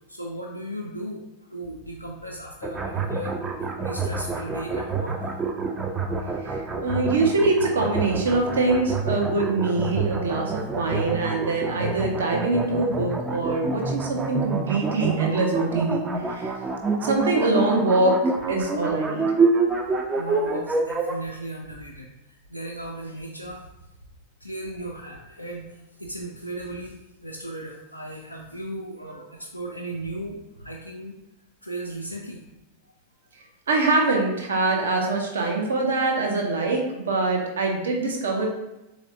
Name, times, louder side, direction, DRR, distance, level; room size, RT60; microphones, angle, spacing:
voice 1, 0.1-3.4 3.8-5.3 20.1-23.6 24.4-31.2 31.6-32.4, right 1 dB, 85° left, -2 dB, 0.3 m, -36 dB
sound 1, 2.6-21.1, right 4 dB, 15° right, 0.4 m, -27 dB
voice 2, 6.4-16.0 16.3-16.5 17.0-19.3 33.7-38.5, right 2 dB, 65° right, 1 dB, 0.7 m, -24 dB
3.9 x 3.1 x 2.6 m, 0.97 s
figure-of-eight pair, 90°, 0 cm